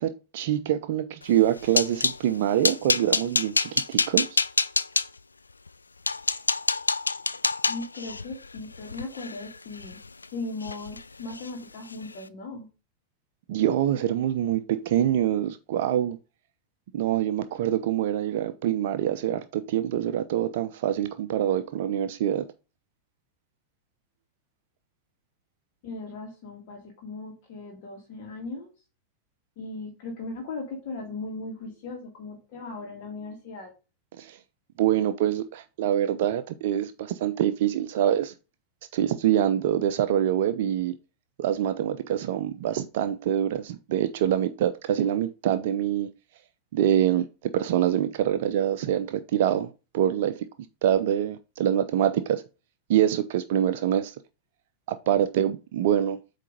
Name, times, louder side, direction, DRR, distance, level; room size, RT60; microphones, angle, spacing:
voice 1, 0.0-4.3 13.5-16.2 16.9-22.5 34.2-34.4 34.8-38.3 38.9-41.0 41.4-46.1 46.7-50.5 50.8-52.4 52.9-54.1 54.9-56.2, right 11 dB, 55° right, 0.5 m, -25 dB
sound 1, 1.3-2.2 2.6-5.1 5.7-5.8 6.1-10.3 10.6-11.0 11.3-11.5 11.9-12.1, left 4 dB, 80° left, 0.3 m, -27 dB
voice 2, 7.7-10.0 10.3-12.7 25.8-28.7 29.6-33.7, left 3 dB, 45° left, 2.0 m, -38 dB
8.3 x 3.3 x 5.2 m
figure-of-eight pair, 90°, 0 cm